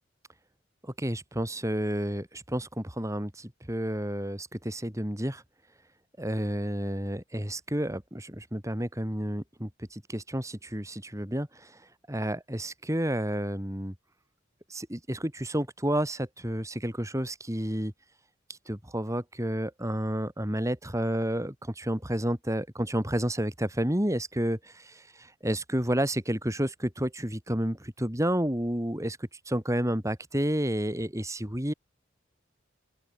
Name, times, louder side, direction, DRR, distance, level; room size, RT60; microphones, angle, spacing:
voice 1, 0.8-5.4 6.2-11.5 12.1-13.9 14.7-17.9 18.7-29.2 29.5-31.7, right 1 dB, 15° right, 3.9 m, -30 dB
open air
head